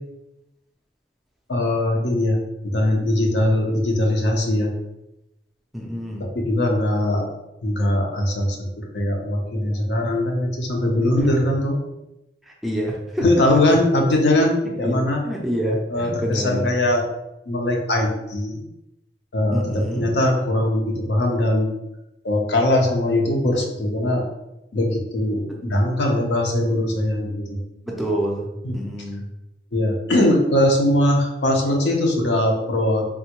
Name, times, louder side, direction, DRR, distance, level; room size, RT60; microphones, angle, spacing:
voice 1, 1.5-4.7 6.2-7.3 7.6-11.8 13.2-15.2 15.9-17.0 17.5-18.6 19.3-21.7 22.2-24.2 24.7-27.6 28.6-28.7 29.7-33.1, left 1 dB, 80° left, 0 dB, 0.6 m, -21 dB
voice 2, 5.7-6.3 11.2-11.4 12.4-13.8 14.8-16.7 19.5-20.1 25.5-25.6 27.9-29.3, equal, ahead, -2 dB, 0.4 m, -27 dB
3.5 x 2.1 x 2.9 m, 0.92 s
head